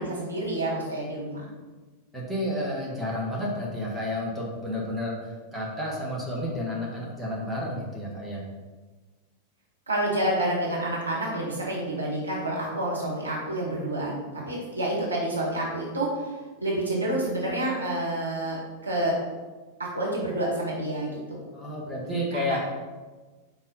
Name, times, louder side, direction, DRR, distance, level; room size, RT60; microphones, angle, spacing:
voice 1, 0.0-1.5 9.9-16.1 16.6-19.2 19.8-21.4 22.1-22.6, right 1 dB, 80° right, -4 dB, 1.7 m, -29 dB
voice 2, 2.1-8.4 21.5-22.6, left 1 dB, 5° right, -5 dB, 1.7 m, -31 dB
4.6 x 4.1 x 5.5 m, 1.3 s
figure-of-eight pair, 90°, 0 cm